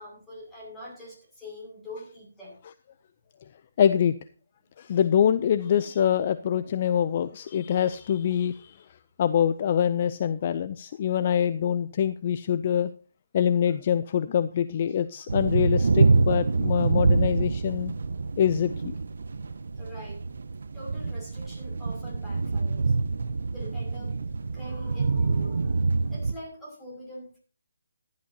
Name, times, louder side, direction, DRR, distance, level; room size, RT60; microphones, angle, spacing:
voice 1, 0.0-2.6 19.8-20.2 20.7-23.0 23.4-24.1 24.5-27.4, left 1 dB, 10° left, -3 dB, 6.3 m, -44 dB
voice 2, 3.8-4.2 4.8-8.9 9.2-12.9 13.3-17.9 18.4-18.9, left 9 dB, 35° left, 14 dB, 0.5 m, -24 dB
sound 1, 15.3-26.3, right 4 dB, 65° right, 0.8 m, -26 dB
15.5 x 11.5 x 2.9 m, 0.37 s
hypercardioid pair, 160°, 0 cm